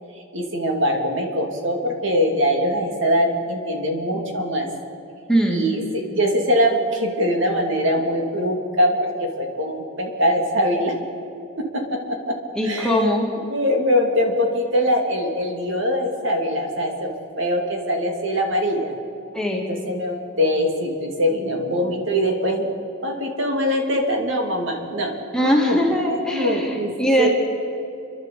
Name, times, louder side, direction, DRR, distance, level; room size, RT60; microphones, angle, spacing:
voice 1, 0.3-4.7 5.5-5.8 6.1-10.9 11.7-11.8 12.1-12.4 12.6-13.0 13.5-17.1 17.4-18.9 19.5-22.7 23.0-25.1 25.4-25.8 26.3-26.9 27.2-27.3, equal, 60° right, 3 dB, 2.9 m, -22 dB
voice 2, 5.3-5.7 12.5-13.3 19.3-19.7 25.3-27.3, equal, 5° left, -1 dB, 2.1 m, -21 dB
29.5 x 11.5 x 8.4 m, 2.8 s
head